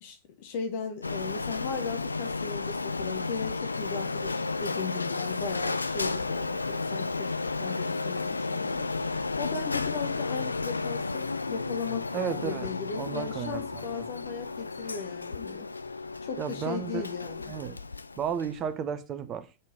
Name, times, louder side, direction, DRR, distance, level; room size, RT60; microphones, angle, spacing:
voice 1, 0.0-7.3 7.6-15.7 16.2-17.5, left 6 dB, 50° left, 0.9 m, -37 dB
Printer, 1.0-18.7, left 3 dB, 80° left, 0.3 m, -33 dB
voice 2, 12.1-12.7 13.0-14.0 16.4-17.1 17.5-17.8 18.2-19.5, right 8 dB, 30° right, 0.8 m, -33 dB
6.6 x 4.1 x 5.4 m
figure-of-eight pair, 90°, 0 cm